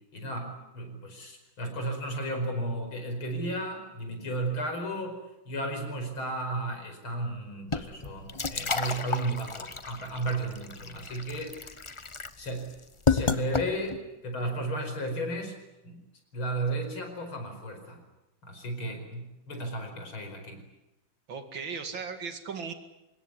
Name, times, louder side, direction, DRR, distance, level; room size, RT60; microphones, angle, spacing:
voice 1, 0.1-5.2 5.5-11.6 12.4-12.7 13.1-15.6 15.8-16.0 16.3-18.0 18.4-20.6, right 1 dB, 85° left, 5 dB, 5.8 m, -34 dB
sound 1, 7.7-14.1, left 4 dB, 30° left, 0.5 m, -32 dB
voice 2, 21.3-22.7, right 5 dB, 70° right, 8 dB, 2.9 m, -37 dB
25.5 x 21.0 x 9.9 m, 0.94 s
omnidirectional pair, 2.2 m